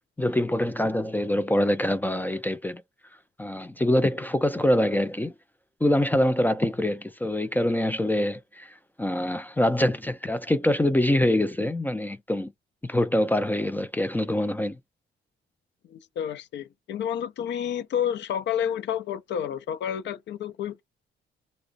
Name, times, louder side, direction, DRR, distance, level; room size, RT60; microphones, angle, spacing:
voice 1, 0.2-2.8 3.4-5.3 5.8-12.5 12.8-14.8, left 1 dB, 10° left, 0.3 m, -25 dB
voice 2, 15.9-20.8, left 9 dB, 65° left, 0.5 m, -30 dB
2.3 x 2.0 x 2.6 m
cardioid pair, 90°, 20 cm